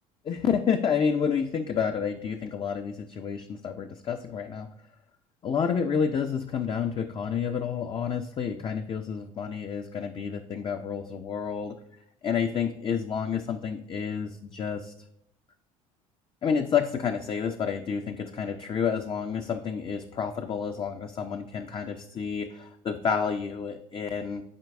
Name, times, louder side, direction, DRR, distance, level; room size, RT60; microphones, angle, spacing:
voice 1, 0.2-4.7 5.4-11.8 12.2-14.9 16.4-24.4, left 7 dB, 30° left, 6 dB, 0.5 m, -29 dB
11.0 x 4.5 x 2.5 m, 0.75 s
figure-of-eight pair, 65°, 18 cm